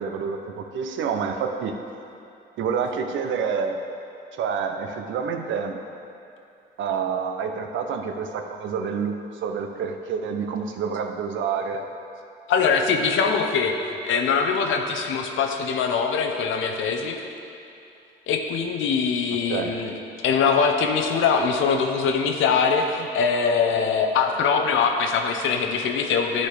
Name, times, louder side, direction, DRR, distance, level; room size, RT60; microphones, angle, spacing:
voice 1, 0.0-1.8 2.6-3.8 4.3-5.8 6.8-11.9 19.5-19.7, right 6 dB, 75° right, 5 dB, 0.6 m, -28 dB
voice 2, 12.5-13.7 14.0-17.2 18.3-19.9 20.2-26.5, left 5 dB, 80° left, 4 dB, 0.7 m, -22 dB
10.5 x 4.1 x 3.3 m, 2.7 s
cardioid pair, 90°, 20 cm